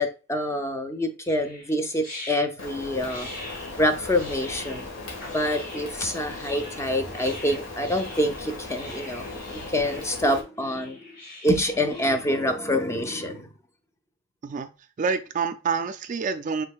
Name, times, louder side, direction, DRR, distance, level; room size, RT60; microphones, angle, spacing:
voice 1, 0.0-3.3 3.8-4.9 5.3-9.2 9.7-11.0 11.4-13.5, left 1 dB, 15° left, 0.5 m, -26 dB
sound 1, 1.2-12.2, left 2 dB, 50° left, 2.7 m, -43 dB
Rain, 2.6-10.4, left 2 dB, 80° left, 1.6 m, -38 dB
voice 2, 15.0-16.7, right 5 dB, 40° right, 0.3 m, -27 dB
5.5 x 3.6 x 2.3 m
head